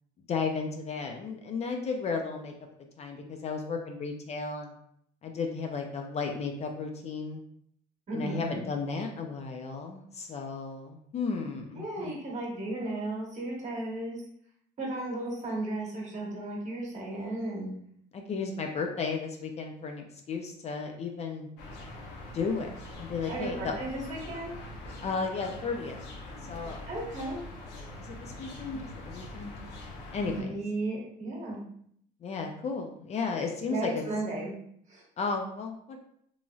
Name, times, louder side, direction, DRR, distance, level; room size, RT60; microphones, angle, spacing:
voice 1, 0.3-2.5 3.0-4.7 5.2-7.4 8.1-12.1 18.1-21.5 22.3-22.7 23.0-23.7 25.0-26.0 26.4-26.9 28.0-29.5 30.1-30.6 32.2-34.0 35.2-36.0, left 4 dB, 40° left, 3 dB, 0.4 m, -34 dB
voice 2, 8.1-8.6 11.7-14.2 14.8-17.7 23.3-24.5 26.9-27.4 30.2-31.6 33.7-34.5 34.9-35.0, right 2 dB, 45° right, -3 dB, 1.1 m, -35 dB
sound 1, 21.6-30.4, left 1 dB, 90° left, 0.6 m, -43 dB
3.0 x 2.6 x 2.3 m, 0.68 s
cardioid pair, 110°, 17 cm